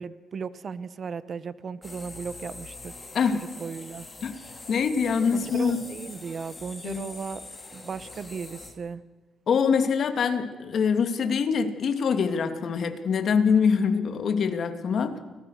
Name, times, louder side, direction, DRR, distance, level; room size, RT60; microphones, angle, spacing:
voice 1, 0.0-2.9 3.3-4.1 5.3-7.4 7.7-9.0, right 5 dB, 50° right, 16 dB, 1.2 m, -36 dB
sound 1, 1.8-8.7, left 3 dB, 20° left, 5.4 m, -43 dB
voice 2, 4.7-5.8 6.8-7.0 9.5-15.2, left 6 dB, 55° left, 7 dB, 2.8 m, -24 dB
29.5 x 19.5 x 6.7 m, 1.3 s
cardioid pair, 90°, 0 cm